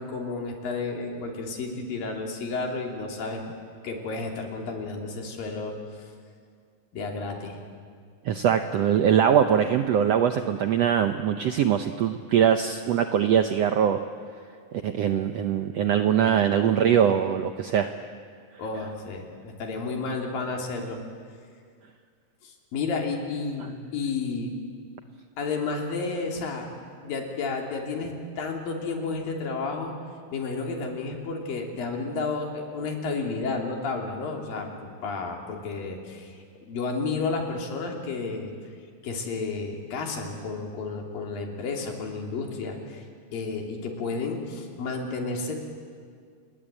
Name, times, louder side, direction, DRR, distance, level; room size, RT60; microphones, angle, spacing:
voice 1, 0.0-3.4 3.8-5.8 6.9-7.6 18.6-21.0 22.4-24.6 25.4-26.7 27.0-29.9 30.3-38.5 39.0-43.0 43.3-45.6, left 4 dB, 80° left, 1 dB, 4.8 m, -31 dB
voice 2, 8.2-14.0 14.7-17.9, right 9 dB, 75° right, 7 dB, 1.5 m, -22 dB
28.5 x 21.5 x 9.0 m, 2.1 s
omnidirectional pair, 4.0 m